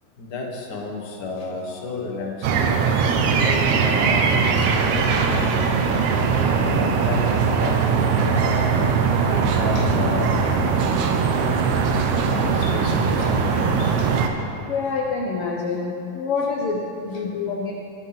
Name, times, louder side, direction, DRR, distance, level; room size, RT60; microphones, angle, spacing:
voice 1, 0.2-2.7 3.2-5.5 6.5-11.7 12.3-14.1 17.1-17.2, left 3 dB, 45° left, 0 dB, 1.5 m, -32 dB
sound 1, 2.4-14.3, right 5 dB, 70° right, 2.1 m, -20 dB
voice 2, 14.7-17.7, left 4 dB, 65° left, -1 dB, 1.4 m, -26 dB
23.0 x 8.8 x 4.1 m, 2.7 s
omnidirectional pair, 3.8 m